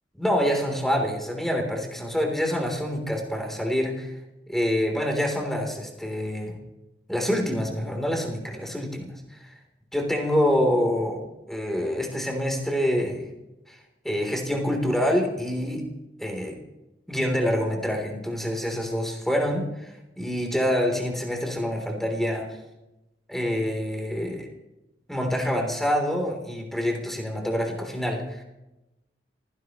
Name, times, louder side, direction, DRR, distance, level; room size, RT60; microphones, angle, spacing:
voice 1, 0.2-4.1 4.5-6.6 7.1-9.4 9.9-11.2 11.5-13.3 13.7-13.8 14.0-15.8 16.2-16.6 17.1-22.5 23.3-24.5 25.1-28.4, equal, ahead, 2 dB, 3.5 m, -26 dB
27.5 x 16.5 x 3.1 m, 0.97 s
head